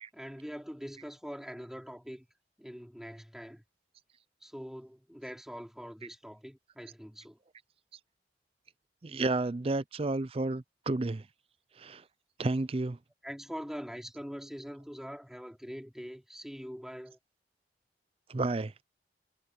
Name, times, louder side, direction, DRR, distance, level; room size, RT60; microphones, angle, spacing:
voice 1, 0.1-2.3 2.6-3.6 4.4-7.4 13.2-17.2, equal, 5° right, 3.2 m, -43 dB
voice 2, 9.0-11.2 11.8-12.0 12.4-13.0 18.3-18.7, right 2 dB, 35° right, 0.5 m, -31 dB
head